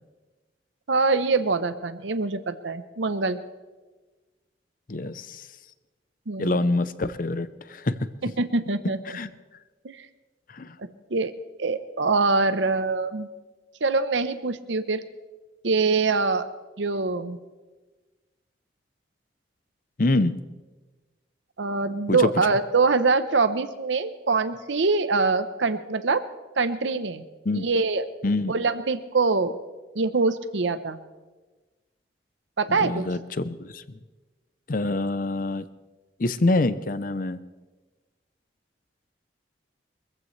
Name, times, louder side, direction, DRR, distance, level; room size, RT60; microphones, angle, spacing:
voice 1, 0.9-3.4 6.3-6.6 8.2-9.0 9.8-10.1 10.8-11.3 11.6-13.3 13.8-15.0 15.6-16.5 16.8-17.4 21.6-26.2 26.6-27.2 27.5-28.1 28.5-29.6 29.9-31.0 32.6-33.1, right 4 dB, 85° right, 11 dB, 0.8 m, -24 dB
voice 2, 4.9-5.5 6.4-8.0 9.1-9.3 10.5-10.8 20.0-20.3 22.1-22.2 27.5-27.7 28.2-28.5 32.7-33.8 34.7-35.6 36.2-37.4, left 2 dB, 50° left, 14 dB, 0.6 m, -26 dB
23.5 x 15.0 x 3.2 m, 1.2 s
head